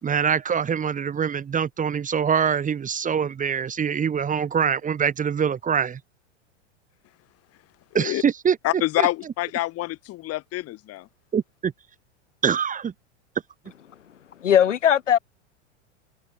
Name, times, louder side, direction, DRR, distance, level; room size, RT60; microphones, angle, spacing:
voice 1, 0.0-6.0 7.9-8.6 9.0-9.1 11.3-11.7 12.4-12.9, right 7 dB, 20° right, 2.3 m, -24 dB
voice 2, 8.6-11.1, left 17 dB, 40° left, 4.2 m, -26 dB
voice 3, 14.4-15.2, left 9 dB, 80° left, 6.9 m, -18 dB
hypercardioid pair, 100°, 36 cm